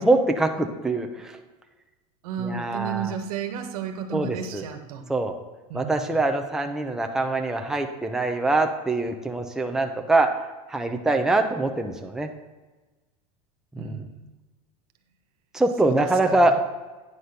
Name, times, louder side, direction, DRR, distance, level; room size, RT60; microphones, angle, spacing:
voice 1, 0.0-1.3 2.4-3.1 4.1-4.6 5.1-5.4 5.7-10.3 10.7-12.3 13.8-14.0 15.5-16.6, right 2 dB, 5° right, 3 dB, 0.8 m, -23 dB
voice 2, 2.2-5.1 5.7-6.1 13.7-14.3 15.8-16.4, right 7 dB, 80° right, 6 dB, 1.4 m, -33 dB
9.6 x 4.1 x 6.7 m, 1.2 s
supercardioid pair, 130°, 19 cm